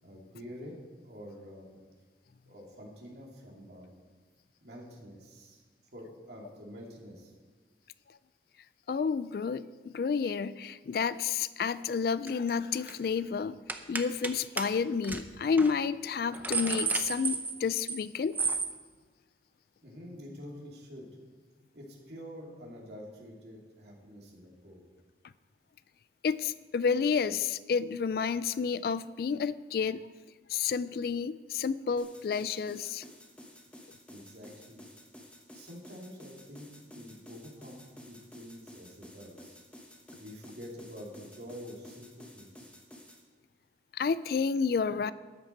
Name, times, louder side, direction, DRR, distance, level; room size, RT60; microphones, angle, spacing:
voice 1, 0.0-1.8 2.5-3.9 4.6-5.6 5.9-7.3 19.8-21.1 21.7-24.8 34.1-34.8 35.5-37.8 38.0-39.6 40.2-42.7, equal, 65° right, -2 dB, 2.8 m, -47 dB
voice 2, 8.9-13.5 13.9-18.4 26.2-30.1 30.5-33.0 43.9-45.1, left 5 dB, 55° left, 16 dB, 0.3 m, -30 dB
sound 1, 12.3-12.5 12.8-13.0 13.7-14.3 14.6-14.7 15.0-15.2 15.6-15.7 16.1-18.0 18.3-18.7, right 4 dB, 10° right, 0.6 m, -32 dB
sound 2, 32.0-43.2, left 1 dB, 5° left, 1.1 m, -52 dB
13.5 x 9.9 x 4.6 m, 1.4 s
head